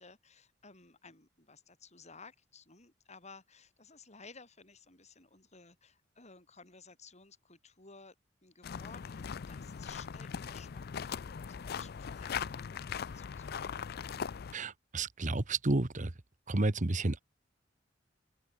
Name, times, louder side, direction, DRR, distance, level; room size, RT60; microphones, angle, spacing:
voice 1, 0.0-8.1 8.4-13.8, left 4 dB, 40° left, 7.3 m, -56 dB
sound 1, 8.6-14.6, left 7 dB, 55° left, 0.5 m, -40 dB
voice 2, 14.5-16.1 16.5-17.2, right 2 dB, 40° right, 1.2 m, -31 dB
open air
head